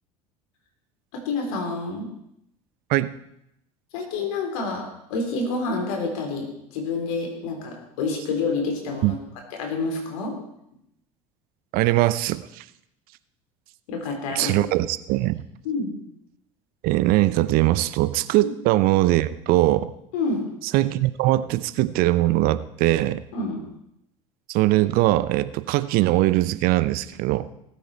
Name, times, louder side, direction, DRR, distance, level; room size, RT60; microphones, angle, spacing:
voice 1, 1.1-2.1 3.9-9.2 9.5-10.4 13.9-14.7 15.6-15.9 18.4-18.5 20.1-20.4 23.3-23.7, left 3 dB, 70° left, 2 dB, 3.9 m, -28 dB
voice 2, 11.7-12.6 14.3-15.4 16.8-19.9 20.7-23.2 24.5-27.5, right 17 dB, 55° right, 15 dB, 0.7 m, -21 dB
19.5 x 8.6 x 4.4 m, 0.79 s
hypercardioid pair, 70°, 18 cm